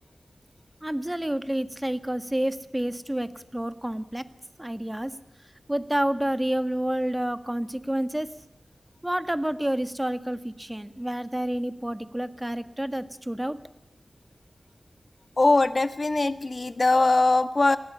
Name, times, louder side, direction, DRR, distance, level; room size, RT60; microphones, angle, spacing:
voice 1, 0.8-4.2 4.6-5.1 5.7-8.3 9.0-13.6, right 1 dB, 15° right, 11 dB, 1.6 m, -29 dB
voice 2, 15.4-17.8, left 2 dB, 45° left, 10 dB, 1.7 m, -21 dB
29.0 x 19.5 x 5.6 m, 0.77 s
wide cardioid pair, 80°, 0 cm